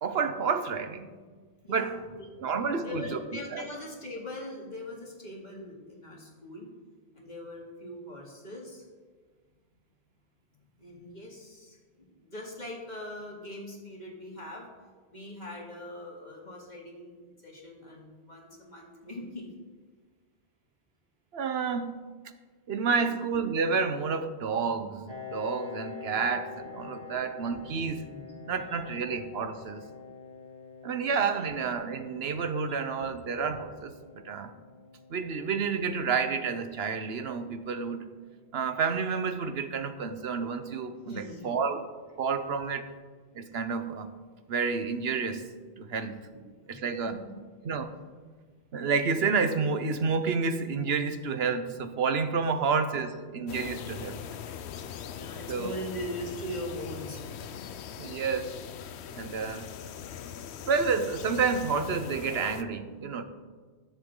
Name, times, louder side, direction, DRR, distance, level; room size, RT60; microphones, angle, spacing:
voice 1, 0.0-1.1 1.7-1.9 2.4-3.2 3.5-3.6 21.3-22.0 22.7-28.0 28.5-29.8 30.8-34.5 35.1-38.0 38.5-41.8 42.2-42.9 43.3-44.1 44.5-45.4 45.8-46.2 46.7-47.2 47.6-47.9 48.7-54.2 55.5-55.8 58.0-58.5 59.1-59.7 60.6-63.2, right 5 dB, 70° right, 9 dB, 1.1 m, -30 dB
voice 2, 1.6-2.0 2.4-2.5 2.8-6.7 7.1-8.9 10.8-14.7 15.1-19.5 22.8-23.1 26.1-26.2 26.8-26.9 27.6-27.8 28.1-28.2 28.5-29.0 30.9-31.0 31.3-31.5 41.0-41.6 46.3-46.8 47.0-47.1 55.2-57.6, left 1 dB, 45° left, -2 dB, 2.6 m, -41 dB
Piano, 25.1-40.4, left 6 dB, 25° right, 1.2 m, -47 dB
sound 1, 53.5-62.6, left 8 dB, 85° left, 0.9 m, -41 dB
20.0 x 7.1 x 3.8 m, 1.5 s
omnidirectional pair, 1.1 m